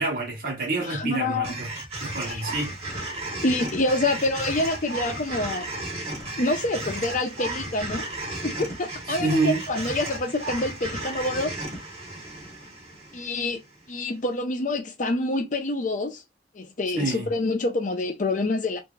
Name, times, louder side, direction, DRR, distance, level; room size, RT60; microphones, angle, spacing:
voice 1, 0.0-1.7 2.0-2.7 9.2-9.7 17.0-17.3, right 2 dB, 55° right, 1.3 m, -27 dB
voice 2, 0.8-1.5 2.2-2.4 3.4-5.7 6.4-8.1 8.4-11.5 13.1-13.6 13.9-16.2 16.5-18.8, left 2 dB, 45° left, 0.6 m, -27 dB
sound 1, 1.4-13.7, right 2 dB, 35° right, 1.1 m, -34 dB
2.9 x 2.6 x 2.3 m
head